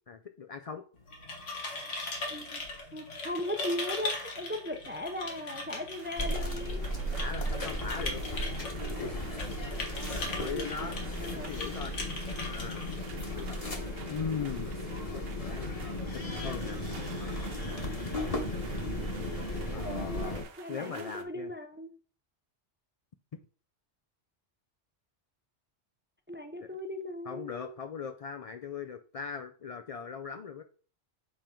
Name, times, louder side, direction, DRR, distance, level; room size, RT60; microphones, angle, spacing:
voice 1, 0.1-0.8 7.1-8.2 10.4-10.9 11.2-12.0 12.4-13.6 14.1-14.8 15.1-15.7 16.1-16.8 19.7-21.5 27.3-30.6, left 6 dB, 60° left, 7 dB, 0.3 m, -40 dB
sound 1, 1.0-13.6, left 2 dB, 85° left, 1.7 m, -40 dB
voice 2, 2.3-2.6 2.9-6.8 10.3-10.9 11.2-11.5 19.8-21.9 26.3-27.7, left 1 dB, 15° right, 6 dB, 0.5 m, -38 dB
sound 2, 5.9-21.2, right 6 dB, 60° right, 0.9 m, -52 dB
sound 3, 6.2-20.4, left 1 dB, 30° left, 1.2 m, -35 dB
7.2 x 4.4 x 3.7 m, 0.40 s
omnidirectional pair, 1.2 m